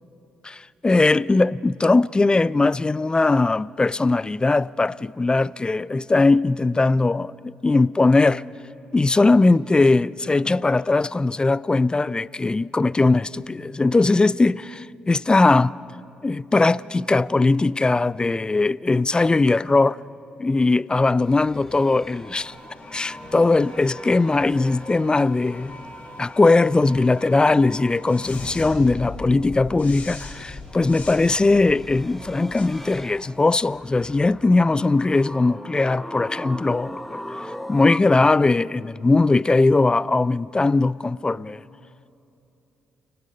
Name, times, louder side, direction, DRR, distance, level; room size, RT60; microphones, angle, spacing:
voice 1, 0.4-8.4 8.9-15.7 16.2-20.0 20.4-22.5 22.9-25.8 26.2-37.2 37.7-41.6, left 3 dB, 20° left, 0.4 m, -20 dB
sound 1, 21.2-25.6 25.9-27.1 30.4-38.0, left 1 dB, 5° left, 1.0 m, -40 dB
sound 2, 21.3-33.6, left 2 dB, 45° left, 6.0 m, -40 dB
29.0 x 18.5 x 5.3 m
hypercardioid pair, 45°, 4 cm